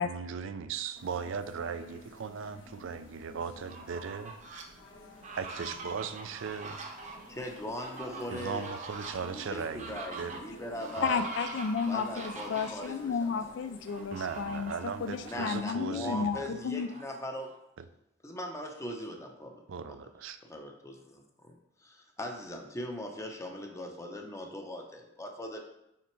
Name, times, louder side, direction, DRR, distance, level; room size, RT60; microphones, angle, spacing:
voice 1, 0.0-4.6 5.4-6.8 8.3-10.4 11.0-11.1 14.1-16.5 19.7-20.4, right 6 dB, 85° right, 11 dB, 0.5 m, -38 dB
sound 1, 0.9-15.6, left 1 dB, 90° left, 1.2 m, -51 dB
Fowl, 3.5-4.6 5.1-12.9 13.9-14.9 15.4-15.5 15.8-17.6, right 3 dB, 40° right, 0.8 m, -44 dB
voice 2, 7.3-8.7 9.5-11.2 11.9-13.5 15.2-17.5 18.2-19.6 19.9-20.0 20.4-21.5 21.8-25.6, left 1 dB, 15° left, 2 dB, 0.7 m, -40 dB
voice 3, 11.0-14.7 15.0-16.9, left 5 dB, 65° left, 9 dB, 0.4 m, -32 dB
5.8 x 4.1 x 4.5 m, 0.85 s
head